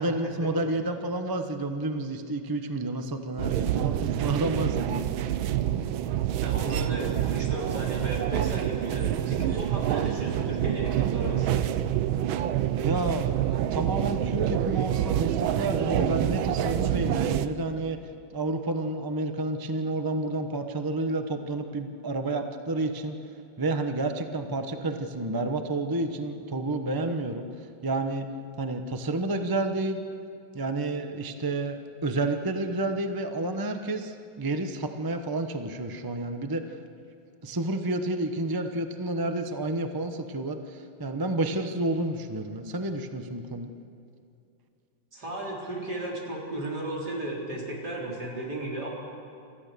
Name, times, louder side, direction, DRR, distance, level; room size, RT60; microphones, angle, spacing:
voice 1, 0.0-5.1 12.8-18.0 18.3-23.2 23.6-28.3 28.6-30.0 30.5-36.8 37.4-43.7, right 2 dB, 25° right, 6 dB, 0.5 m, -30 dB
sound 1, 3.4-17.5, right 11 dB, 85° right, 1.6 m, -27 dB
voice 2, 6.4-11.6 45.1-48.9, right 1 dB, 55° right, -3 dB, 4.6 m, -34 dB
27.5 x 14.5 x 6.8 m, 2.6 s
omnidirectional pair, 2.2 m